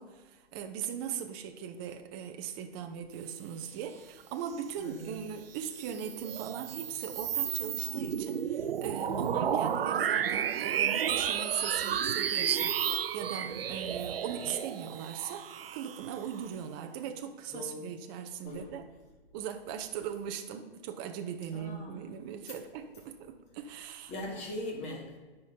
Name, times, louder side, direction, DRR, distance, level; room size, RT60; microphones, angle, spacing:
voice 1, 0.0-18.9 19.3-24.4, right 8 dB, 25° right, 6 dB, 0.5 m, -39 dB
voice 2, 4.8-5.1 9.1-9.5 17.5-17.8 18.4-18.7 21.5-22.1 24.1-25.2, left 1 dB, 20° left, 0 dB, 1.9 m, -40 dB
sound 1, 5.5-16.5, right 9 dB, 65° right, 0.6 m, -32 dB
9.1 x 5.3 x 5.5 m, 1.3 s
hypercardioid pair, 130°, 31 cm